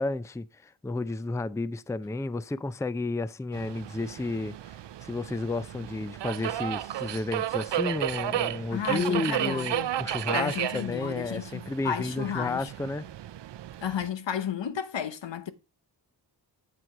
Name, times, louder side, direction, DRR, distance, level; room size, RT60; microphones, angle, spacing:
voice 1, 0.0-13.1, left 2 dB, 5° left, 0.4 m, -32 dB
Subway metro underground, 3.5-14.1, right 12 dB, 75° right, 0.5 m, -33 dB
voice 2, 8.7-9.9 10.3-12.7 13.8-15.5, left 8 dB, 80° left, 1.0 m, -32 dB
7.9 x 7.8 x 3.6 m
cardioid pair, 55°, 43 cm